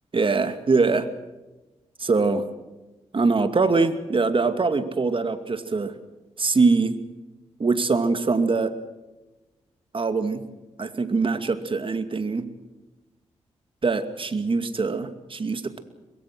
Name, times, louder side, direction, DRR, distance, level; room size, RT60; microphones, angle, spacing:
voice 1, 0.1-1.1 2.0-2.5 3.1-5.9 6.4-7.0 7.6-8.7 9.9-10.5 10.8-12.5 13.8-15.8, right 4 dB, 45° right, 10 dB, 2.4 m, -23 dB
23.5 x 22.0 x 6.3 m, 1.1 s
supercardioid pair, 50°, 12 cm